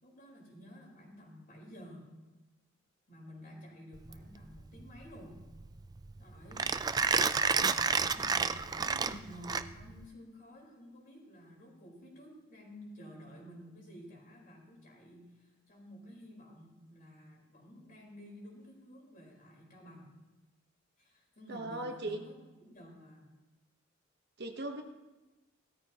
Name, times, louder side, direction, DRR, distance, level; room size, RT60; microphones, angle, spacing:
voice 1, 0.0-2.1 3.1-5.5 6.2-6.7 7.4-20.1 21.0-23.3, equal, 45° left, -2 dB, 4.1 m, -52 dB
Mechanisms, 4.0-10.1, right 5 dB, 20° right, 0.4 m, -31 dB
voice 2, 21.5-22.3 24.4-24.8, right 2 dB, 55° right, 4 dB, 1.0 m, -38 dB
17.0 x 13.0 x 2.9 m, 1.1 s
head